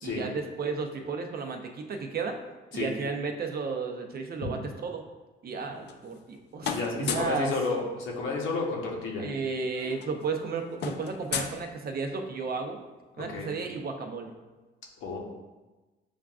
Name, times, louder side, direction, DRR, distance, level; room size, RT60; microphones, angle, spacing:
voice 1, 0.0-2.4 2.7-5.0 5.4-7.5 9.2-12.8 13.2-14.3, right 4 dB, 50° right, 4 dB, 0.6 m, -33 dB
sound 1, 5.6-6.3 6.6-7.4 8.8-8.9 9.1-9.4 9.6-12.3, left 7 dB, 60° left, 0.4 m, -36 dB
voice 2, 6.7-9.3 13.1-13.5 15.0-15.2, left 4 dB, 85° left, -1 dB, 0.9 m, -31 dB
7.0 x 2.4 x 2.3 m, 1.2 s
cardioid pair, 90°, 20 cm